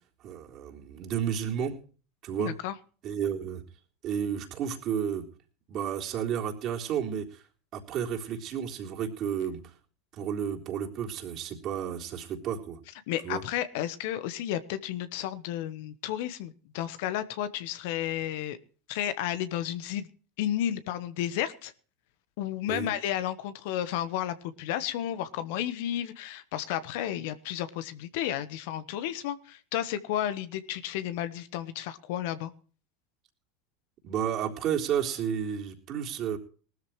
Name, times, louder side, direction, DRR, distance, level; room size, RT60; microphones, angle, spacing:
voice 1, 0.2-1.7 2.2-2.5 3.0-3.6 4.0-5.2 5.7-7.4 7.7-9.6 10.2-12.8 13.2-13.4 22.7-22.9 34.0-36.4, right 8 dB, 45° right, 1 dB, 3.6 m, -32 dB
voice 2, 2.4-2.7 13.1-18.6 18.9-20.1 20.4-21.7 22.4-32.5, left 11 dB, 65° left, 13 dB, 1.2 m, -32 dB
19.5 x 13.0 x 3.2 m, 0.39 s
hypercardioid pair, 85°, 0 cm